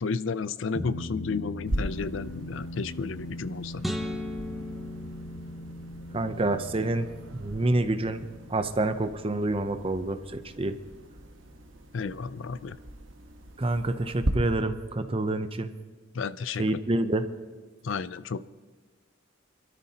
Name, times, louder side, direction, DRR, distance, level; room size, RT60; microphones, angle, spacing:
voice 1, 0.0-3.8 11.9-12.8 16.1-16.6 17.8-18.4, left 4 dB, 70° left, 15 dB, 0.5 m, -32 dB
sound 1, 0.7-11.4, left 1 dB, 55° left, 1.6 m, -41 dB
sound 2, 1.7-14.3, right 1 dB, 70° right, 1.3 m, -39 dB
sound 3, 3.8-6.2, left 1 dB, ahead, 0.9 m, -36 dB
voice 2, 6.1-7.1 7.4-8.2 8.5-10.8 13.6-15.7 16.6-17.2, right 2 dB, 30° right, 9 dB, 0.6 m, -27 dB
26.0 x 13.0 x 2.9 m, 1.4 s
head